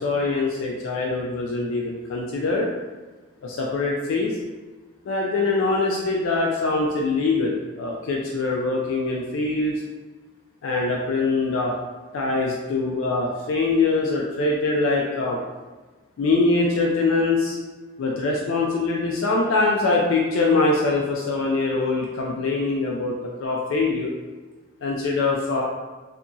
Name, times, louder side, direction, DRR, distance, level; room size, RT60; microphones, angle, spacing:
voice 1, 0.0-2.7 3.4-4.4 5.1-9.8 10.6-11.7 12.1-15.4 16.2-17.6 18.0-24.1 24.8-25.6, left 3 dB, 90° left, -2 dB, 0.4 m, -23 dB
2.7 x 2.6 x 2.3 m, 1.3 s
head